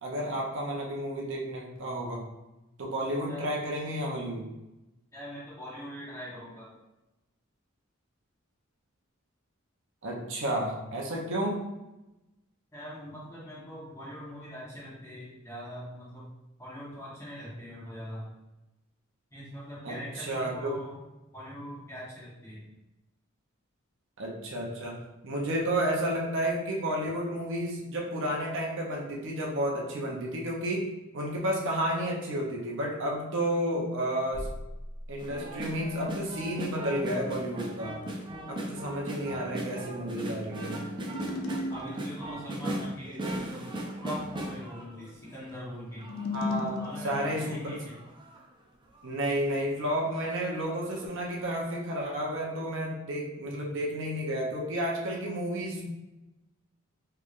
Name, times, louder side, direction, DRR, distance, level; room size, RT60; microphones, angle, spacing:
voice 1, 0.0-2.2 2.8-4.5 10.0-11.7 19.8-20.7 24.2-34.5 35.1-38.0 38.5-40.8 46.3-47.8 49.0-55.9, right 1 dB, 65° right, -2 dB, 0.7 m, -31 dB
voice 2, 5.1-6.7 12.7-16.3 16.6-18.3 19.3-21.0 21.3-22.6 41.7-43.7 44.0-46.1 46.8-48.0, equal, 15° left, -7 dB, 1.2 m, -42 dB
sound 1, 34.3-35.9, equal, 35° left, 1.4 m, -41 dB
sound 2, 35.2-45.5 46.0-48.4 49.0-49.1 49.3-49.6 50.1-51.1 51.4-51.5, right 1 dB, 25° right, 0.4 m, -38 dB
sound 3, 40.9-42.3 45.9-47.7, left 2 dB, 70° left, 0.5 m, -36 dB
3.6 x 3.3 x 2.5 m, 0.98 s
head